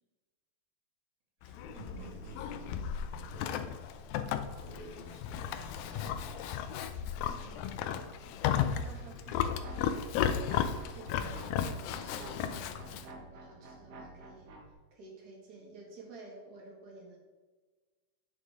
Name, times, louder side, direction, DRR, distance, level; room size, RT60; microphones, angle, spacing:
Livestock farm animals working animals, 1.4-13.1, left 8 dB, 85° left, 2.4 m, -35 dB
voice 1, 1.4-2.8 3.1-3.8 4.2-6.4, right 2 dB, 90° right, -4 dB, 4.2 m, -51 dB
voice 2, 7.2-7.8 8.2-10.2 10.8-14.5 14.9-17.2, right 3 dB, 40° right, -1 dB, 1.6 m, -52 dB
sound 1, 9.6-14.7, right 2 dB, 65° right, 1.6 m, -50 dB
9.4 x 6.6 x 3.6 m, 1.3 s
omnidirectional pair, 4.1 m